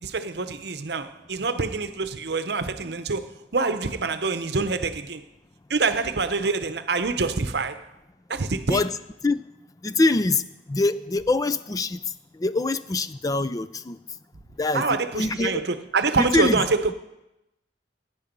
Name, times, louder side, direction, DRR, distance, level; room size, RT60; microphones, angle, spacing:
voice 1, 0.0-5.2 5.7-7.8 8.3-8.9 14.7-16.9, right 4 dB, 65° right, 0.8 m, -26 dB
voice 2, 9.8-10.4 10.7-12.0 12.4-14.0 14.6-15.6 16.2-16.6, left 2 dB, 20° left, 0.4 m, -24 dB
16.0 x 9.6 x 5.3 m
head